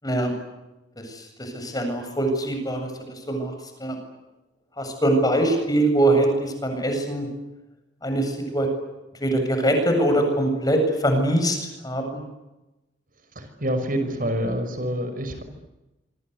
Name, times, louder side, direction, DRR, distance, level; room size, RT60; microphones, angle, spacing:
voice 1, 1.0-3.5 3.8-4.0 4.8-7.3 8.0-8.7 9.2-11.6 11.8-12.2, right 1 dB, 20° left, 5 dB, 7.8 m, -23 dB
voice 2, 13.4-15.4, equal, 50° right, 8 dB, 5.8 m, -27 dB
28.0 x 26.0 x 8.3 m, 1.0 s
head